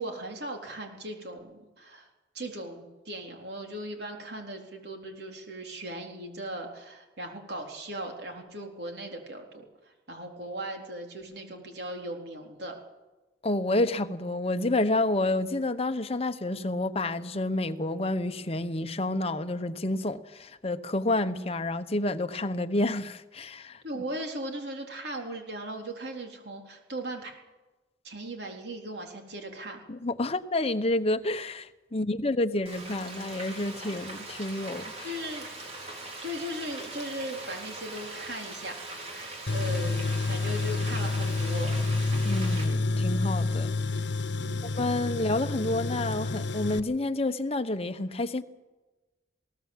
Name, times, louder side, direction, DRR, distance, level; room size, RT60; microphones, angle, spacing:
voice 1, 0.0-2.1 2.3-12.8 23.8-27.4 28.0-29.8 35.0-35.7 36.2-41.7 44.4-44.6, right 1 dB, 65° right, 3.9 m, -38 dB
voice 2, 13.4-23.8 29.9-35.1 42.1-43.7 44.6-48.4, left 2 dB, 35° left, 1.0 m, -29 dB
Frying (food), 32.7-42.7, right 2 dB, 35° right, 4.0 m, -41 dB
Tools, 39.5-46.8, left 3 dB, 80° left, 1.0 m, -29 dB
21.0 x 18.0 x 7.4 m
head